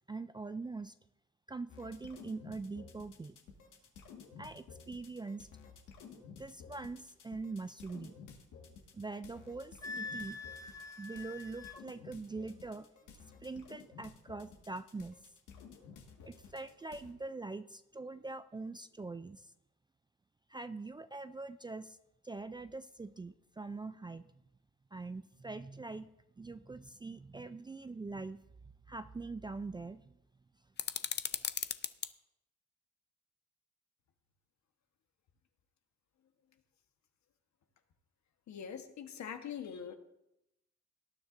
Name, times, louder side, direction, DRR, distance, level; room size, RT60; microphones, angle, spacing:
voice 1, 0.1-0.9 1.5-3.4 4.4-5.5 6.2-8.2 8.9-10.4 11.0-12.9 13.1-15.2 16.2-19.5 20.5-22.0 22.2-24.2 24.9-26.1 26.4-28.4 28.9-30.1, right 3 dB, 15° right, 11 dB, 0.4 m, -43 dB
sound 1, 1.7-17.1, left 6 dB, 85° left, 1.8 m, -54 dB
Wind instrument woodwind instrument, 9.8-11.8, left 3 dB, 10° left, 1.0 m, -44 dB
sound 2, 30.8-32.1, left 8 dB, 35° left, 0.5 m, -37 dB
voice 2, 38.5-39.9, left 8 dB, 65° left, 6 dB, 1.3 m, -43 dB
18.5 x 9.7 x 2.6 m, 0.86 s
cardioid pair, 90°, 30 cm